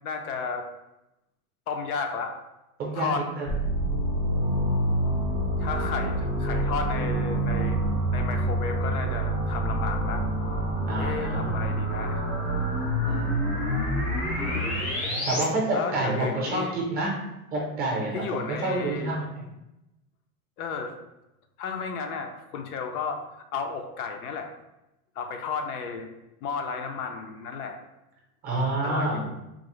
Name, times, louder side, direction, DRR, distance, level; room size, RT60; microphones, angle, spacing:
voice 1, 0.0-0.7 1.7-2.4 2.9-3.3 5.6-7.8 8.1-10.3 11.0-12.2 14.3-15.0 15.7-16.8 18.1-19.1 20.6-20.9 21.6-23.3 23.5-24.5 25.2-26.1 26.4-27.8 28.8-29.3, left 5 dB, 70° left, 5 dB, 0.6 m, -33 dB
voice 2, 2.8-3.6 10.9-11.5 13.1-13.6 15.3-17.1 17.5-19.5 28.4-29.3, right 2 dB, 20° right, -2 dB, 0.6 m, -28 dB
sound 1, 3.5-15.4, right 1 dB, 25° left, 0.4 m, -27 dB
3.7 x 2.0 x 3.0 m, 0.91 s
supercardioid pair, 145°, 46 cm